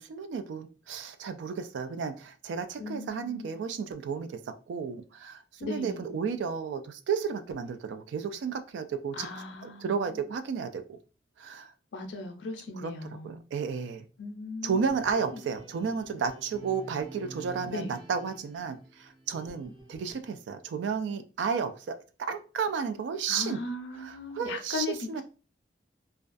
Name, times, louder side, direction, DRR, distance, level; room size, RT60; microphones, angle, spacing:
voice 1, 0.0-9.3 9.6-11.0 11.4-11.7 12.8-12.9 13.2-14.0 14.6-23.6 24.0-25.2, right 6 dB, 90° right, 0.3 m, -33 dB
voice 2, 2.8-3.6 5.6-6.1 9.1-10.2 11.9-13.4 14.2-14.9 15.2-15.4 17.7-18.0 23.3-25.2, left 3 dB, 80° left, 0.5 m, -38 dB
sound 1, 14.7-20.2, right 2 dB, 25° right, 0.5 m, -49 dB
2.3 x 2.2 x 2.5 m
head